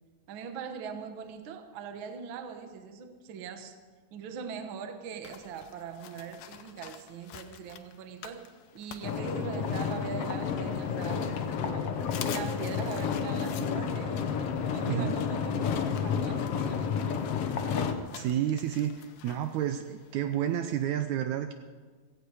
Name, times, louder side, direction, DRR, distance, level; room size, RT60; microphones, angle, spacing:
voice 1, 0.3-3.8 4.1-11.9 12.2-14.3 14.7-17.1, right 6 dB, 55° right, 7 dB, 1.4 m, -41 dB
sound 1, 5.2-9.9 10.3-11.3 11.6-11.7 12.0-20.8, left 9 dB, 80° left, 2.4 m, -49 dB
sound 2, 9.0-17.9, left 6 dB, 65° left, 1.7 m, -31 dB
voice 2, 18.1-21.5, right 10 dB, 75° right, 8 dB, 1.9 m, -30 dB
17.0 x 15.5 x 4.8 m, 1.5 s
omnidirectional pair, 3.7 m